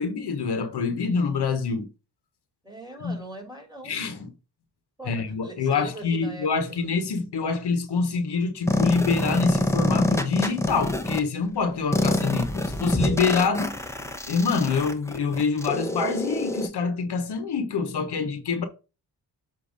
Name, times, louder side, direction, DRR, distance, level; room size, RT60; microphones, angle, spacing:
voice 1, 0.0-1.9 3.0-3.2 3.8-4.3 5.0-13.8 14.2-18.7, left 5 dB, 70° left, 1.2 m, -26 dB
voice 2, 2.6-3.9 5.0-6.5 7.4-7.5, right 1 dB, 10° right, 2.9 m, -41 dB
sound 1, 8.7-11.2 11.9-16.7, left 1 dB, 5° left, 0.8 m, -26 dB
7.4 x 2.9 x 5.1 m
cardioid pair, 80°, 42 cm